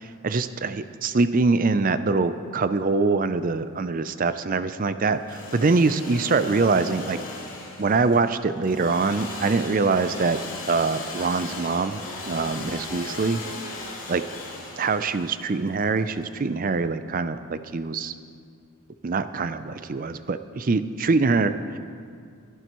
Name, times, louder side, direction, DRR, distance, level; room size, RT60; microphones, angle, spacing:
voice 1, 0.0-7.2 7.8-10.4 10.7-13.4 14.1-14.2 14.8-18.1 19.0-21.8, right 4 dB, 40° right, 11 dB, 0.4 m, -24 dB
Engine / Sawing, 5.1-16.8, left 2 dB, 60° left, 3.2 m, -38 dB
22.0 x 12.5 x 3.1 m, 2.3 s
head